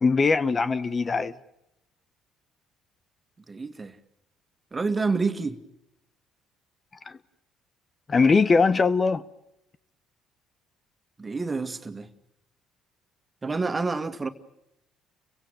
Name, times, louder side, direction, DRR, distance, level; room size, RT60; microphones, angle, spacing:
voice 1, 0.0-1.3 7.1-7.2 8.1-9.2, left 4 dB, 35° left, 1.0 m, -21 dB
voice 2, 3.5-3.9 4.7-5.6 11.2-12.1 13.4-14.3, right 4 dB, 25° right, 2.1 m, -28 dB
29.5 x 16.5 x 9.1 m
supercardioid pair, 65°, 0 cm